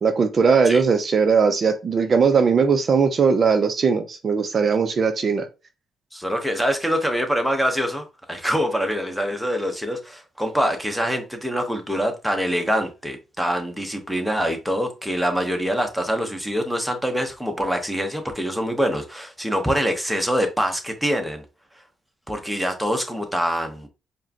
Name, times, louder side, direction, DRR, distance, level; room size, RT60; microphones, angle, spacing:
voice 1, 0.0-5.5, right 5 dB, 45° right, 0.5 m, -19 dB
voice 2, 6.1-21.4 22.3-23.9, equal, ahead, 1.0 m, -25 dB
4.7 x 2.2 x 2.9 m
cardioid pair, 90°, 0 cm